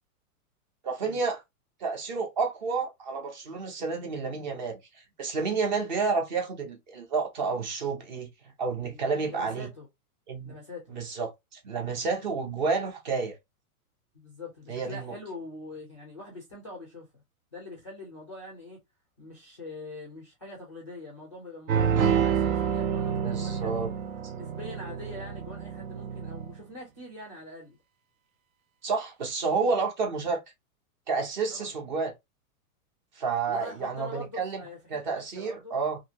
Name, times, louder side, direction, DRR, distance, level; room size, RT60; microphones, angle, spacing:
voice 1, 0.8-1.4 1.8-4.8 5.2-8.3 8.6-9.7 10.3-10.5 10.9-13.4 14.7-15.1 23.2-23.9 28.8-30.4 31.1-32.1 33.2-34.6 34.9-36.0, right 4 dB, 30° right, 0.7 m, -30 dB
voice 2, 8.8-9.9 10.5-11.0 14.1-17.1 17.5-18.8 19.2-23.9 24.4-27.8 31.5-31.7 33.5-35.8, left 2 dB, 25° left, 0.3 m, -44 dB
sound 1, 21.7-26.6, right 8 dB, 65° right, 0.7 m, -28 dB
2.7 x 2.7 x 2.8 m
supercardioid pair, 175°, 45 cm